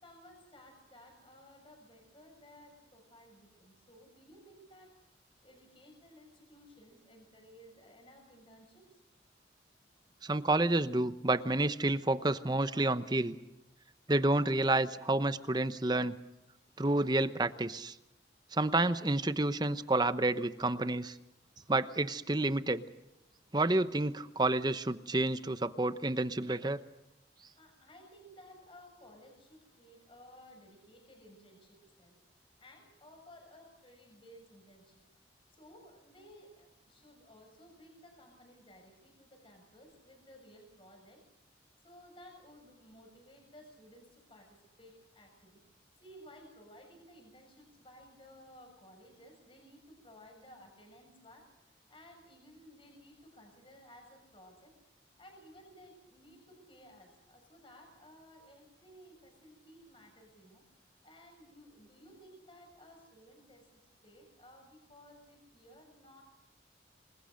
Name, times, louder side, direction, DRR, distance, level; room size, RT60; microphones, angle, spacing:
voice 1, 0.0-5.0 5.4-9.0 27.5-32.2 32.6-35.0 35.5-41.2 41.8-54.7 55.2-66.2, equal, 30° left, 3 dB, 6.7 m, -57 dB
voice 2, 10.2-13.4 14.1-16.1 16.8-17.9 18.5-21.2 21.7-22.8 23.5-26.8, right 2 dB, 20° right, 12 dB, 0.9 m, -29 dB
27.5 x 21.0 x 6.4 m, 0.93 s
head